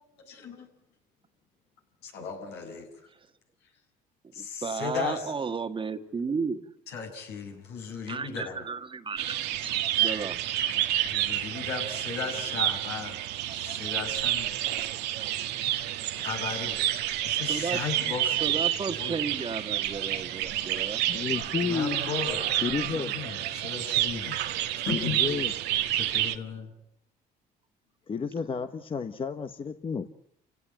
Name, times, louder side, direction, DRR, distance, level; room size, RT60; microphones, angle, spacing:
voice 1, 0.1-0.7 2.0-2.9 4.3-5.2 6.9-8.6 10.7-13.2 13.5-14.5 16.1-16.8 17.2-18.6 19.0-19.1 21.7-24.4 24.7-25.2 25.9-26.7, left 5 dB, 80° left, 2 dB, 7.5 m, -36 dB
voice 2, 4.4-6.7 8.1-10.4 17.5-17.8 18.2-21.0, right 5 dB, 30° right, 8 dB, 1.7 m, -34 dB
sound 1, 9.2-26.4, right 13 dB, 85° right, 1.7 m, -29 dB
voice 3, 21.1-22.1 22.6-23.2 24.9-25.5 28.1-30.1, left 5 dB, 30° left, 9 dB, 1.3 m, -31 dB
29.0 x 17.0 x 8.9 m, 0.78 s
cardioid pair, 110°, 17 cm